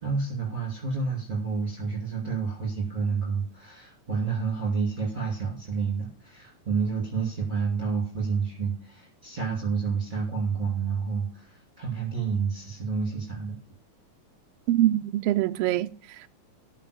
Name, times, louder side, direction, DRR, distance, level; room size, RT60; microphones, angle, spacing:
voice 1, 0.0-13.6, right 5 dB, 15° right, 2.6 m, -29 dB
voice 2, 14.7-16.3, right 14 dB, 85° right, 1.3 m, -24 dB
14.0 x 4.9 x 6.8 m
omnidirectional pair, 3.5 m